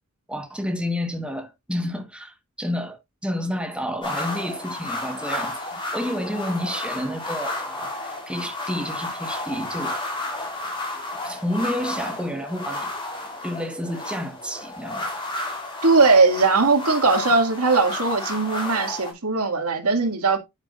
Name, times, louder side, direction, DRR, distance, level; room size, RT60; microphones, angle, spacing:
voice 1, 0.3-10.0 11.2-12.9 13.4-15.0, equal, 5° right, 1.3 m, -30 dB
sound 1, 4.0-19.1, left 2 dB, 20° left, 3.8 m, -32 dB
voice 2, 15.8-20.4, right 3 dB, 85° right, 2.3 m, -19 dB
9.6 x 8.4 x 2.5 m
head